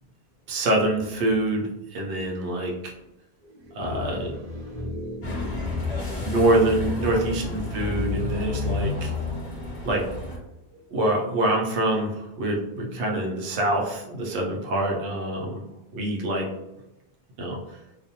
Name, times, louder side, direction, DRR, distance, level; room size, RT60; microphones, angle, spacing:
voice 1, 0.5-2.7 3.7-4.3 6.2-9.1 9.8-10.0 10.9-15.6 15.9-16.5 17.4-17.6, right 1 dB, 90° right, -1 dB, 0.9 m, -25 dB
voice 2, 3.4-7.4 10.7-10.8, left 2 dB, 40° right, -4 dB, 0.7 m, -35 dB
sound 1, 5.2-10.4, left 3 dB, 45° left, 0.6 m, -31 dB
2.4 x 2.1 x 2.7 m, 0.90 s
omnidirectional pair, 1.1 m